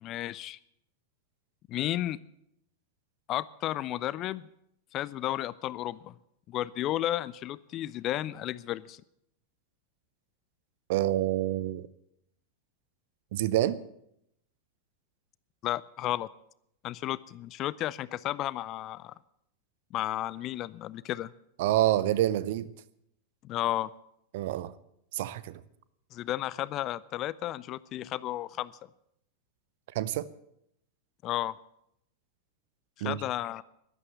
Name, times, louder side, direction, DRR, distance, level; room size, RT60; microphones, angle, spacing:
voice 1, 0.0-0.6 1.7-2.2 3.3-4.5 4.9-6.1 6.5-9.0 15.6-16.3 16.8-19.1 19.9-21.3 23.4-23.9 26.1-28.7 31.2-31.6 33.0-33.6, left 14 dB, 35° left, 20 dB, 0.5 m, -33 dB
voice 2, 10.9-11.9 13.3-13.8 21.6-22.7 24.3-24.7 25.1-25.6 29.9-30.3 33.0-33.2, right 13 dB, 50° right, 18 dB, 0.7 m, -27 dB
12.5 x 12.0 x 8.3 m, 0.76 s
figure-of-eight pair, 90°, 0 cm